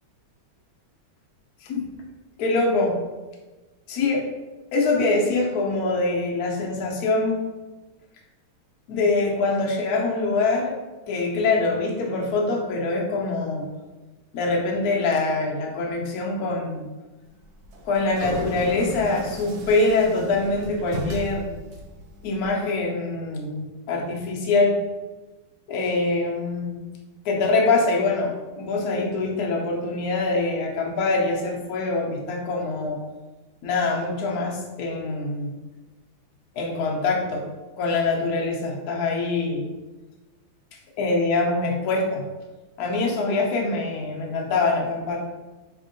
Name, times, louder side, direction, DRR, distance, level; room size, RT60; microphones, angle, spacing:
voice 1, 2.4-3.0 3.9-4.2 4.7-7.4 8.9-10.7 11.1-13.7 14.3-16.9 17.8-21.6 22.2-24.8 25.7-26.8 27.2-33.0 33.6-35.6 36.5-37.5 37.8-39.7 41.0-42.2 42.8-45.2, left 3 dB, 65° left, 0 dB, 1.0 m, -24 dB
sound 1, 17.4-22.5, right 1 dB, 75° right, 0.9 m, -35 dB
4.3 x 3.5 x 2.6 m, 1.2 s
omnidirectional pair, 2.2 m